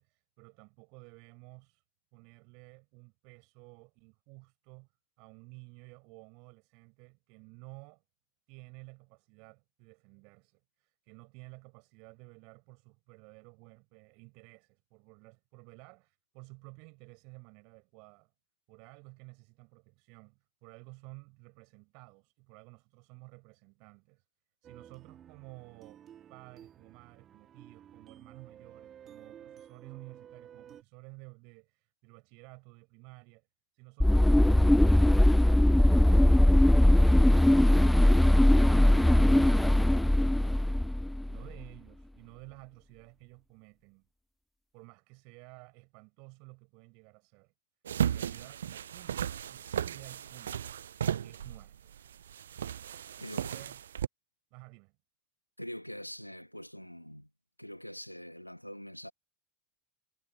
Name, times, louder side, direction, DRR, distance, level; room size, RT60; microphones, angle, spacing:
voice 1, 0.0-1.8 2.1-4.9 5.2-8.0 8.5-18.3 18.7-24.3 24.6-26.0 26.3-33.5 33.7-40.6 41.3-44.1 44.7-47.5 48.0-50.7 51.2-52.0 53.2-53.8 54.5-55.0, right 32 dB, 50° right, 7.4 m, -53 dB
sound 1, 24.6-30.8, right 9 dB, 30° right, 3.4 m, -53 dB
sound 2, 34.0-41.4, left 1 dB, 5° left, 0.3 m, -21 dB
sound 3, 47.9-54.1, right 9 dB, 70° right, 0.5 m, -35 dB
voice 2, 55.6-57.3 57.6-59.1, equal, 90° left, 1.9 m, -44 dB
figure-of-eight pair, 80°, 0 cm